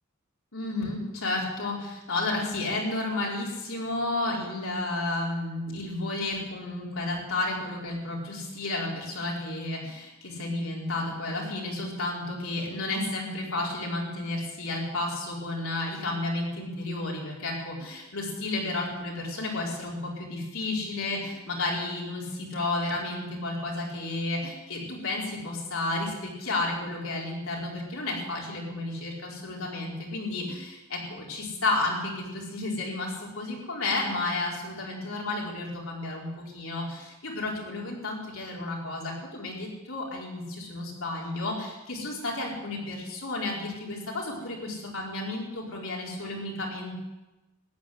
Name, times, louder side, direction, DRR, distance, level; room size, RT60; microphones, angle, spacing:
voice 1, 0.5-47.0, left 2 dB, 85° left, -2 dB, 4.9 m, -32 dB
14.5 x 10.0 x 9.6 m, 1.1 s
head